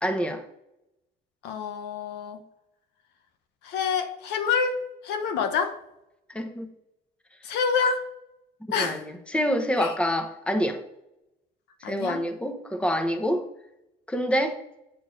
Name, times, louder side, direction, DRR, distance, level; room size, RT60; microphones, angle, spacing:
voice 1, 0.0-0.4 6.3-6.7 8.7-10.8 11.8-13.5 14.1-14.6, equal, 5° left, 6 dB, 1.1 m, -27 dB
voice 2, 1.4-2.4 3.6-5.8 7.4-8.0 8.7-9.0 9.8-9.9 11.8-12.2, left 6 dB, 85° left, 7 dB, 1.1 m, -27 dB
8.7 x 4.5 x 5.3 m, 0.85 s
cardioid pair, 110°, 17 cm